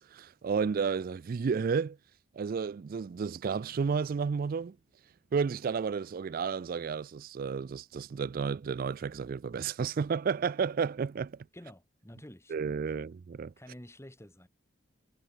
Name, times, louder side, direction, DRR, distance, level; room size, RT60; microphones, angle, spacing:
voice 1, 0.0-2.0 2.3-4.8 5.3-11.5 12.5-13.5, right 5 dB, 45° right, 0.3 m, -32 dB
voice 2, 11.5-12.6 12.9-13.0 13.6-14.5, left 1 dB, 15° left, 2.4 m, -50 dB
head